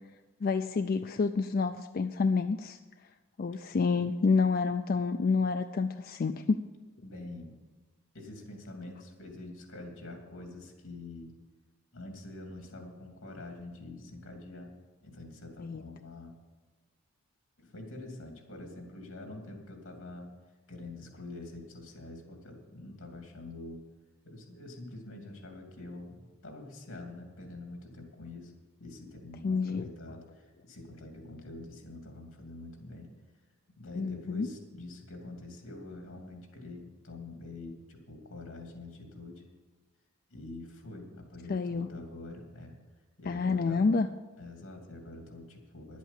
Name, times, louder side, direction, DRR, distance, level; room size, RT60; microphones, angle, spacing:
voice 1, 0.4-2.8 3.4-6.6 15.6-15.8 29.4-29.9 34.0-34.5 41.5-41.9 43.3-44.1, left 4 dB, 45° left, 8 dB, 0.4 m, -28 dB
voice 2, 7.0-7.5 8.1-11.3 11.9-14.7 15.0-16.3 17.6-20.3 20.7-23.8 24.2-28.5 28.8-33.1 33.8-39.4 40.3-42.7 43.2-43.8 44.4-46.0, left 2 dB, 80° left, 2 dB, 2.8 m, -45 dB
11.0 x 8.3 x 7.4 m, 1.2 s
head